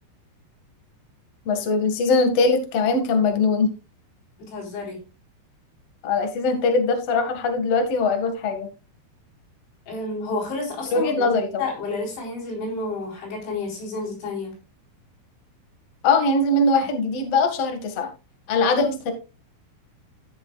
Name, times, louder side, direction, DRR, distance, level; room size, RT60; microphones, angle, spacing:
voice 1, 1.5-3.7 6.0-8.7 10.9-11.7 16.0-18.1 18.5-19.1, left 3 dB, 45° left, 5 dB, 2.1 m, -21 dB
voice 2, 4.4-5.0 9.9-14.5, left 3 dB, 75° left, 0 dB, 6.6 m, -30 dB
16.0 x 6.9 x 2.4 m, 0.30 s
omnidirectional pair, 5.3 m